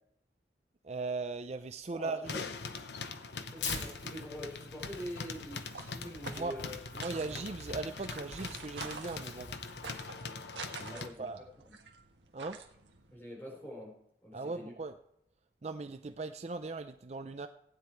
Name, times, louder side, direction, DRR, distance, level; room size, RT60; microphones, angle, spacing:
voice 1, 0.8-2.4 6.3-6.6 6.9-9.5 10.8-11.5 12.3-12.6 14.3-15.0 15.6-17.5, right 3 dB, 35° right, 9 dB, 0.5 m, -39 dB
voice 2, 1.9-2.4 3.5-6.8 7.2-7.4 10.9-11.3 11.7-11.8 13.1-13.9 14.2-14.7, equal, 10° left, -2 dB, 4.0 m, -45 dB
sound 1, 2.2-11.1, left 4 dB, 65° left, 0.9 m, -43 dB
Tearing, 3.6-10.1, left 4 dB, 90° left, 2.5 m, -46 dB
sound 2, 5.4-13.1, right 5 dB, 85° right, 1.6 m, -49 dB
16.0 x 9.6 x 4.5 m, 0.75 s
head